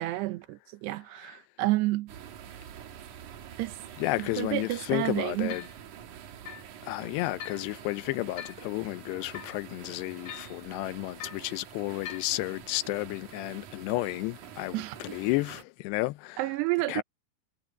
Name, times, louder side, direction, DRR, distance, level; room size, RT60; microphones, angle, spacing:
voice 1, 0.0-2.1 3.6-3.8 4.2-5.5 14.7-15.2 16.4-17.0, right 18 dB, 90° right, 3.1 m, -30 dB
sound 1, 2.1-15.6, right 9 dB, 60° right, 2.5 m, -47 dB
sound 2, 3.8-3.9 4.6-4.7 5.5-5.8 6.5-6.7 7.4-7.6 8.4-8.7 9.3-9.6 10.2-10.6 11.2-11.5 12.0-12.3, left 9 dB, 55° left, 3.3 m, -42 dB
voice 2, 4.0-5.7 6.8-16.4 16.9-17.0, left 20 dB, 85° left, 2.8 m, -32 dB
omnidirectional pair, 4.8 m